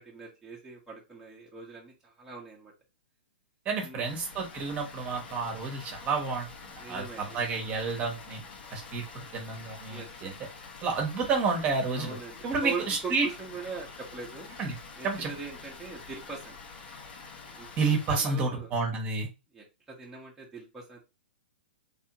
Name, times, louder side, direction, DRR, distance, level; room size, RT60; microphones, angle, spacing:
voice 1, 0.0-2.7 3.8-4.0 6.8-7.7 9.9-10.3 11.9-14.5 15.0-16.6 17.5-18.7 19.5-21.0, right 4 dB, 10° right, -4 dB, 1.1 m, -41 dB
voice 2, 3.6-6.5 6.9-7.0 7.3-8.4 8.7-10.3 10.8-12.2 12.4-13.3 14.6-14.7 15.0-15.3 17.8-19.3, right 4 dB, 25° right, 1 dB, 1.2 m, -30 dB
Water, 4.0-18.2, left 4 dB, 60° left, 1.4 m, -47 dB
3.4 x 3.4 x 3.0 m, 0.27 s
hypercardioid pair, 125°, 6 cm